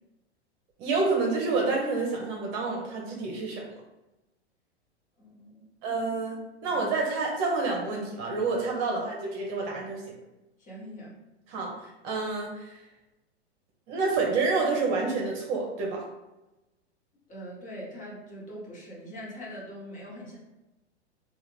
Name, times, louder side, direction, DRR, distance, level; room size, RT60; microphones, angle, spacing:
voice 1, 0.8-3.7 5.8-10.0 11.5-11.7 12.0-12.8 13.9-16.0, right 3 dB, 40° right, -1 dB, 0.9 m, -28 dB
voice 2, 5.2-6.0 6.7-6.9 8.9-9.0 10.6-11.2 17.3-20.4, equal, 20° left, -5 dB, 1.3 m, -43 dB
3.7 x 2.5 x 3.2 m, 1.0 s
hypercardioid pair, 110°, 35 cm